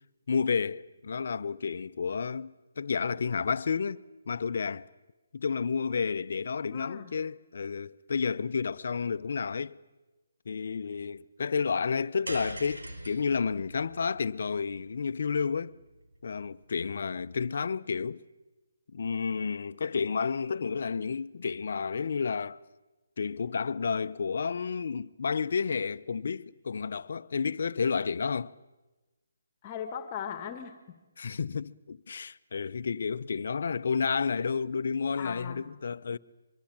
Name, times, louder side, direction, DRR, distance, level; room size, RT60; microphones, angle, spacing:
voice 1, 0.3-4.9 5.3-9.8 10.5-15.8 16.2-18.2 18.9-22.6 23.2-28.5 31.2-36.2, left 5 dB, 60° left, 0.8 m, -31 dB
voice 2, 6.7-7.1 29.6-31.0 35.2-35.7, left 8 dB, 30° left, 1.9 m, -39 dB
sound 1, 12.3-16.6, right 1 dB, 90° right, 4.7 m, -43 dB
24.5 x 23.5 x 8.9 m
hypercardioid pair, 155°, 0 cm